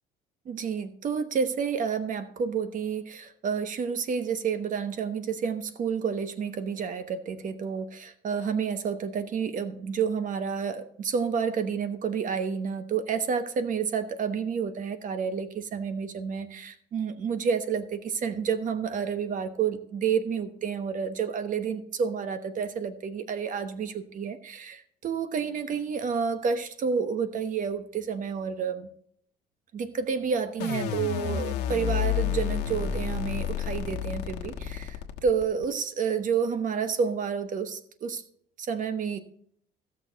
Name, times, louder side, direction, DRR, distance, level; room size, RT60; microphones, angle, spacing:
voice 1, 0.4-28.9 29.7-38.2 38.6-39.2, right 6 dB, 50° right, 10 dB, 1.1 m, -30 dB
sound 1, 30.6-35.6, left 9 dB, 90° left, 1.2 m, -30 dB
16.0 x 6.5 x 4.0 m, 0.65 s
cardioid pair, 110°, 17 cm